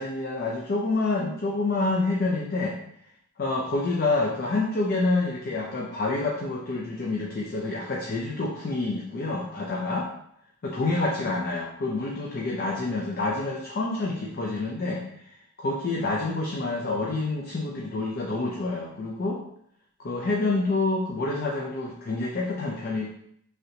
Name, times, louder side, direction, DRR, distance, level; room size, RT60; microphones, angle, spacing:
voice 1, 0.0-2.8 3.4-10.1 10.6-15.0 15.6-19.4 20.0-23.1, left 2 dB, 45° left, -2 dB, 0.4 m, -27 dB
3.1 x 2.7 x 2.8 m, 0.71 s
head